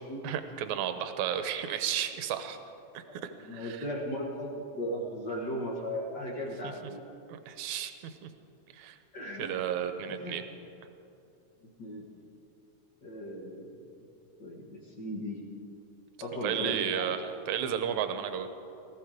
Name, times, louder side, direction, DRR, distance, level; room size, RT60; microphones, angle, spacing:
voice 1, 0.2-2.6 2.9-3.8 6.6-6.7 7.3-8.3 8.7-9.0 9.4-10.4 16.4-18.6, right 9 dB, 70° right, 9 dB, 2.0 m, -33 dB
voice 2, 3.5-4.5 4.7-7.0 9.1-9.6 10.1-10.4 11.8-12.0 13.0-13.7 14.4-15.4 16.2-17.1, equal, 40° left, -2 dB, 1.6 m, -36 dB
19.5 x 14.0 x 5.0 m, 2.7 s
omnidirectional pair, 3.8 m